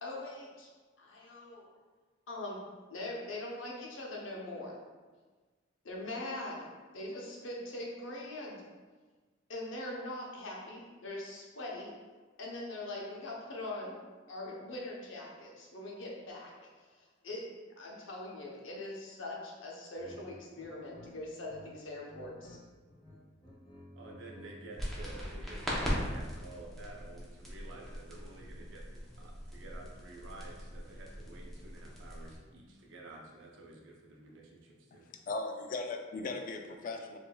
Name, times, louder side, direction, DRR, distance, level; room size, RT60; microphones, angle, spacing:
voice 1, 0.0-0.7 1.0-1.7 2.3-2.6 2.9-4.8 5.8-6.7 6.9-8.6 9.5-11.9 12.4-14.0 14.3-22.6, left 1 dB, 75° left, -2 dB, 0.8 m, -42 dB
sound 1, 19.9-20.2 20.5-21.7 21.9-22.6 22.9-24.8, left 1 dB, 25° left, 1.1 m, -53 dB
voice 2, 24.0-35.1, right 2 dB, 70° right, -1 dB, 0.6 m, -51 dB
sound 2, 24.8-32.4, equal, ahead, 0.6 m, -40 dB
voice 3, 35.1-37.2, left 3 dB, 45° left, 4 dB, 0.3 m, -38 dB
4.6 x 2.5 x 2.3 m, 1.3 s
head